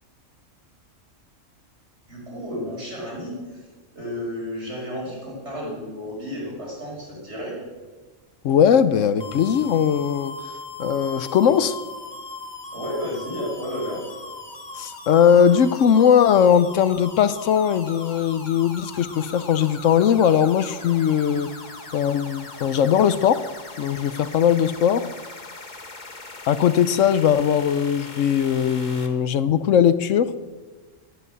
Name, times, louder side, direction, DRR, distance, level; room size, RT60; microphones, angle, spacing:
voice 1, 2.1-3.6 3.9-7.6 12.7-14.1, equal, 60° right, -3 dB, 5.7 m, -32 dB
voice 2, 8.4-10.3 10.8-11.8 14.8-21.5 21.9-23.4 23.8-25.1 26.5-30.3, left 8 dB, 75° left, 14 dB, 1.0 m, -19 dB
sound 1, 9.2-29.1, left 3 dB, 35° left, 1.5 m, -39 dB
13.5 x 10.5 x 7.9 m, 1.3 s
omnidirectional pair, 1.3 m